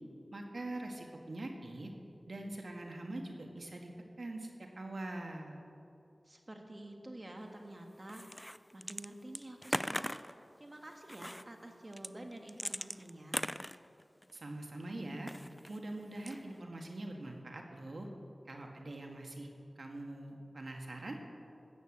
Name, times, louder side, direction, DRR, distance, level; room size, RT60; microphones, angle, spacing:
voice 1, 0.3-1.9 2.3-3.9 4.2-4.5 4.7-5.6 14.3-15.3 15.7-18.1 18.5-19.5 19.8-21.2, right 2 dB, 75° right, 2 dB, 1.7 m, -43 dB
voice 2, 6.2-8.2 8.7-10.2 10.6-13.5, right 1 dB, 40° right, 3 dB, 1.7 m, -49 dB
sound 1, 8.1-9.1 9.3-10.3 11.1-11.4 11.9-14.4 15.2-15.8 16.2-16.6, equal, 5° left, 0.4 m, -39 dB
13.5 x 8.1 x 7.9 m, 2.7 s
wide cardioid pair, 45°, 0 cm